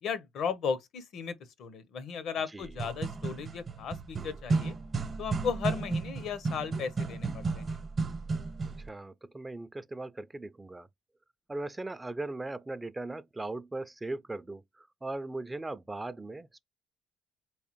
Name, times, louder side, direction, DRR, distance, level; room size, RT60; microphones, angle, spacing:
voice 1, 0.0-4.8 5.2-7.8, left 6 dB, 70° left, 0.6 m, -35 dB
sound 1, 2.6-8.9, right 4 dB, 45° right, 0.8 m, -33 dB
voice 2, 8.7-10.9 11.5-16.6, right 2 dB, 20° right, 0.4 m, -39 dB
3.4 x 3.1 x 2.9 m
supercardioid pair, 65°, 0 cm